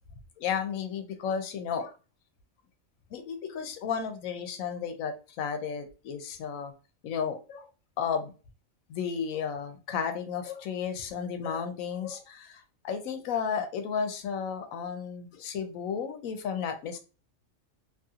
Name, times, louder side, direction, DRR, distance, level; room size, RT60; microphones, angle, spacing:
voice 1, 0.4-1.9 3.1-6.7 7.0-7.7 8.0-8.3 8.9-17.0, left 7 dB, 90° left, 1.0 m, -33 dB
2.8 x 2.4 x 2.7 m
omnidirectional pair, 1.4 m